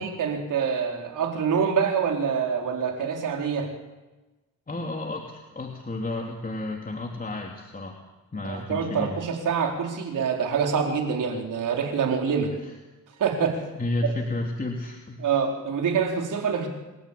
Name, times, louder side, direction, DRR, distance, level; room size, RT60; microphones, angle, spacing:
voice 1, 0.0-3.7 8.4-12.5 13.2-13.6 15.2-16.7, right 6 dB, 70° right, 2 dB, 4.6 m, -26 dB
voice 2, 4.7-8.0 8.3-9.2 12.6-12.7 13.8-15.3, left 2 dB, 25° left, 1 dB, 3.2 m, -31 dB
28.5 x 14.0 x 8.7 m, 1.1 s
cardioid pair, 75°, 33 cm